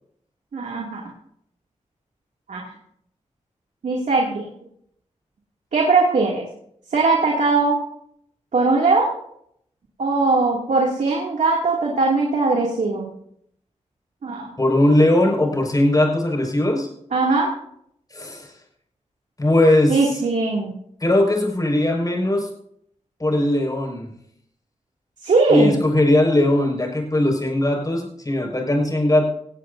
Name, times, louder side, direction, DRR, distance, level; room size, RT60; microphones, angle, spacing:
voice 1, 0.5-1.0 2.5-2.6 3.8-4.5 5.7-6.5 6.9-7.8 8.5-9.1 10.0-13.1 14.2-14.5 17.1-17.5 19.9-20.7 25.2-25.7, right 3 dB, 80° right, -2 dB, 2.5 m, -20 dB
voice 2, 14.6-16.9 18.1-18.5 19.4-20.1 21.0-22.5 23.2-24.1 25.5-29.3, left 1 dB, 30° left, 0 dB, 5.3 m, -19 dB
17.0 x 17.0 x 2.7 m, 0.71 s
wide cardioid pair, 75°, 13 cm